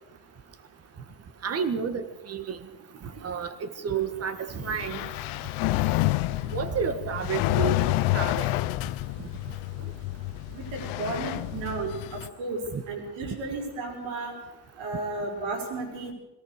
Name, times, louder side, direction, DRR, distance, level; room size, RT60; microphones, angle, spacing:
voice 1, 1.4-2.6 3.2-5.1 6.5-8.5 12.7-12.8, right 6 dB, 30° right, 10 dB, 1.7 m, -31 dB
sound 1, 4.6-12.3, left 18 dB, 85° left, 0.8 m, -29 dB
voice 2, 10.5-12.6 12.9-14.3 14.8-16.1, right 3 dB, 75° right, 2 dB, 6.0 m, -33 dB
22.5 x 18.0 x 6.7 m, 1.0 s
cardioid pair, 160°, 48 cm